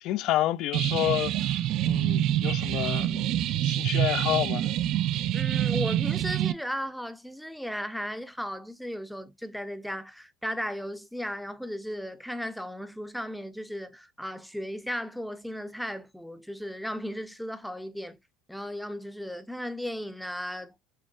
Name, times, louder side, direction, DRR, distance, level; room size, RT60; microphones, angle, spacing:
voice 1, 0.0-1.5 1.8-3.2 3.6-4.7, left 14 dB, 60° left, 0.3 m, -29 dB
sound 1, 0.7-6.5, right 12 dB, 60° right, 0.3 m, -26 dB
voice 2, 5.3-18.2 18.5-20.7, equal, ahead, 0.5 m, -35 dB
6.4 x 2.2 x 2.3 m
supercardioid pair, 110°, 0 cm